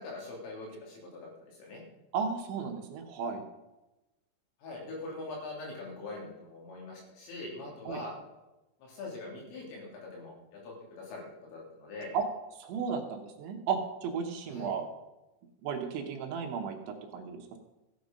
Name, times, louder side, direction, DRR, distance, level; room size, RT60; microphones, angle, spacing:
voice 1, 0.0-1.8 4.6-8.2 8.8-11.2 11.5-12.1 14.5-14.7, left 2 dB, 80° left, -1 dB, 5.6 m, -43 dB
voice 2, 2.1-3.4 7.9-8.0 12.1-12.3 12.6-14.8 15.6-17.6, right 6 dB, 75° right, 4 dB, 3.3 m, -34 dB
15.0 x 8.7 x 5.2 m, 1.0 s
omnidirectional pair, 5.8 m